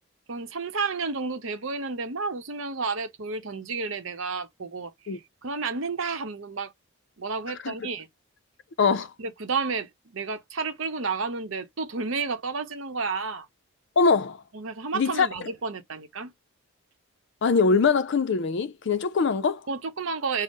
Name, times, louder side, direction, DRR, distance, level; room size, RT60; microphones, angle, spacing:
voice 1, 0.3-6.7 7.2-8.1 9.2-13.5 14.5-16.3 19.7-20.4, right 4 dB, 65° right, 0.8 m, -31 dB
voice 2, 8.8-9.1 14.0-14.4 14.9-15.3 17.4-19.6, left 4 dB, 55° left, 0.4 m, -22 dB
5.2 x 2.0 x 3.5 m
head